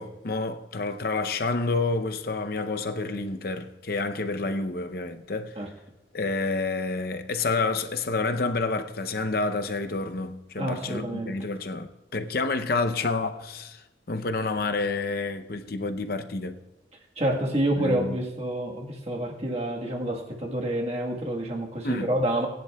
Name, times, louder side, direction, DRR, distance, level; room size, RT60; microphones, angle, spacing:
voice 1, 0.0-5.6 6.1-16.6 17.8-18.1 21.8-22.1, left 3 dB, 55° left, 0.7 m, -29 dB
voice 2, 10.6-11.5 17.2-22.5, right 1 dB, 35° right, 1.4 m, -28 dB
19.5 x 10.5 x 2.3 m
head